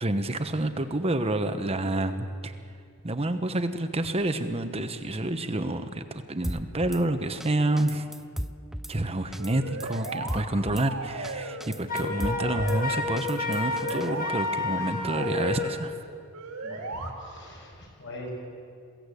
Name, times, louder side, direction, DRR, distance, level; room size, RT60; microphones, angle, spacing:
voice 1, 0.0-2.5 3.0-8.1 8.9-15.9, right 1 dB, 25° right, 9 dB, 1.1 m, -28 dB
Drum kit / Snare drum, 6.4-7.0 7.4-7.5 7.8-8.9 9.3-9.5 9.8-10.9 11.2-11.3 11.6-12.8 13.2-14.1, equal, ahead, 0.5 m, -36 dB
sound 1, 9.4-10.4 10.8-11.7 12.0-13.0 13.5-14.3 14.8-15.8 16.3-17.1, right 3 dB, 90° right, 3.0 m, -37 dB
Wind instrument woodwind instrument, 11.9-15.8, left 3 dB, 40° left, 1.8 m, -30 dB
voice 2, 16.6-18.3, left 1 dB, 55° left, -1 dB, 6.9 m, -42 dB
22.5 x 17.0 x 8.4 m, 2.3 s
head